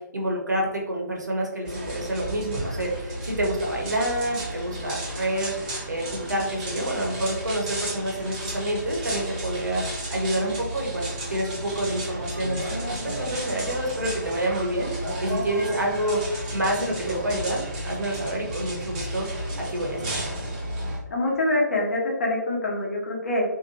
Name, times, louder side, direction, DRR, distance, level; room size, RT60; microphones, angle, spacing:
voice 1, 0.0-9.8 10.1-20.3, right 1 dB, 70° right, -1 dB, 0.8 m, -28 dB
sound 1, 1.7-21.0, right 1 dB, 20° right, 0.6 m, -33 dB
voice 2, 21.1-23.4, left 1 dB, 50° left, -2 dB, 0.8 m, -25 dB
2.7 x 2.2 x 2.8 m, 0.99 s
figure-of-eight pair, 140°, 10 cm